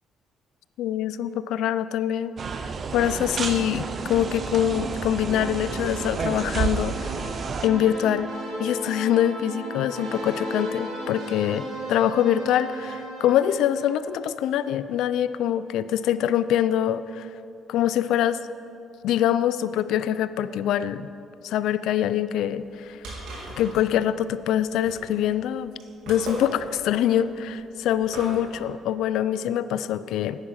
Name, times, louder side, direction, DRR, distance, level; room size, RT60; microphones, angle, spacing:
voice 1, 0.8-2.3 2.6-7.3 7.6-8.3 8.6-17.3 17.7-18.4 19.0-21.1 21.4-23.0 23.6-25.7 26.1-30.5, left 10 dB, 80° left, 15 dB, 0.4 m, -24 dB
sound 1, 2.4-7.7, right 5 dB, 35° right, 0.5 m, -30 dB
sound 2, 3.2-14.5, right 1 dB, 65° right, 3.0 m, -36 dB
sound 3, 22.6-28.6, right 1 dB, 85° right, 2.7 m, -38 dB
9.6 x 9.5 x 6.3 m, 2.7 s
cardioid pair, 150°, 0 cm